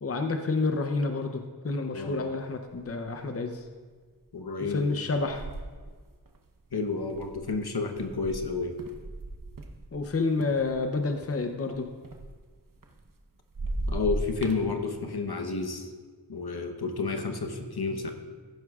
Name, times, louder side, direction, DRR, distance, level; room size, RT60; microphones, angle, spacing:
voice 1, 0.0-3.6 4.6-5.4 9.9-11.9, left 3 dB, 35° left, 5 dB, 0.7 m, -29 dB
voice 2, 1.9-2.3 4.3-4.9 6.7-8.8 13.9-15.9 16.3-18.1, left 4 dB, 65° left, 5 dB, 1.0 m, -31 dB
sound 1, 2.2-2.3 2.7-3.2 3.7-3.9 4.8-10.1 10.4-13.2 13.5-14.6, right 2 dB, 55° right, 0.9 m, -37 dB
15.5 x 11.0 x 2.4 m, 1.5 s
wide cardioid pair, 60°, 40 cm